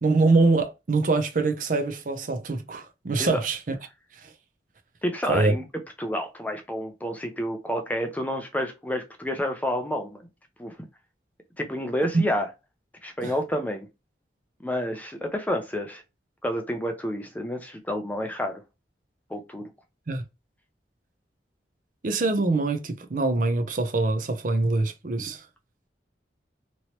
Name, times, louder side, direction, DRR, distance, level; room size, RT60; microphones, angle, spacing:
voice 1, 0.0-3.7 4.2-4.3 5.3-5.5 12.1-12.2 13.2-13.3 20.1-20.2 22.0-25.4, right 3 dB, 45° right, 0.5 m, -24 dB
voice 2, 5.0-5.6 6.0-10.2 10.6-10.8 11.6-12.5 13.0-13.9 14.6-16.0 16.4-18.6 19.3-19.7, equal, 10° left, 0.4 m, -29 dB
3.0 x 2.9 x 2.9 m
head